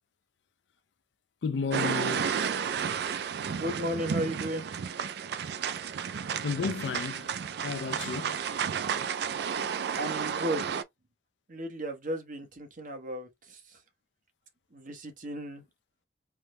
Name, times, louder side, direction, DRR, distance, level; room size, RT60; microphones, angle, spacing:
voice 1, 1.4-2.3 6.4-7.3 7.6-8.4, left 5 dB, 90° left, 0.4 m, -32 dB
sound 1, 1.7-10.8, right 7 dB, 65° right, 0.4 m, -32 dB
voice 2, 3.6-4.7 5.6-5.8 9.9-10.8 11.5-13.8 14.7-15.6, equal, 50° right, 0.9 m, -35 dB
3.5 x 2.1 x 3.0 m
head